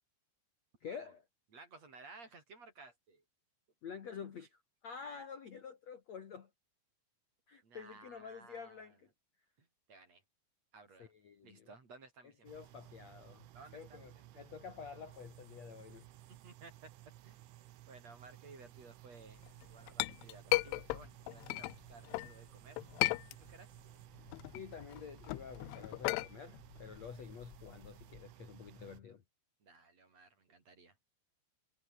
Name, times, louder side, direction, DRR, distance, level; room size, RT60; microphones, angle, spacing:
voice 1, 0.8-1.2 3.8-6.5 7.5-9.1 11.0-11.7 12.4-13.4 13.7-16.1 24.5-29.2, left 6 dB, 50° left, 2.3 m, -49 dB
voice 2, 1.5-3.2 4.9-5.1 7.6-8.9 9.6-10.2 10.7-11.1 11.4-12.5 13.5-14.5 16.4-16.9 17.2-17.4 17.9-19.4 19.7-22.9 23.4-23.8 29.6-31.0, right 3 dB, 35° right, 5.2 m, -57 dB
sound 1, 12.5-29.0, right 14 dB, 85° right, 4.0 m, -57 dB
Chink clink, 19.5-22.3 22.8-23.8 24.2-28.2, left 22 dB, 85° left, 3.1 m, -37 dB
omnidirectional pair, 5.5 m